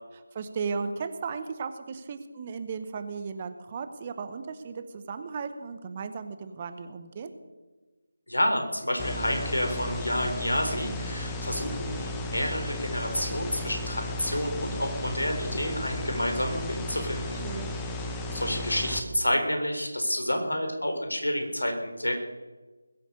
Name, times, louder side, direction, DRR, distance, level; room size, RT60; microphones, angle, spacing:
voice 1, 0.3-7.3 17.4-17.8, right 5 dB, 25° right, 9 dB, 1.0 m, -35 dB
voice 2, 8.3-17.4 18.3-22.1, left 1 dB, 75° left, 5 dB, 4.1 m, -29 dB
sound 1, 9.0-19.0, left 1 dB, 10° left, 1.2 m, -34 dB
20.5 x 9.1 x 6.7 m, 1.2 s
figure-of-eight pair, 160°, 0 cm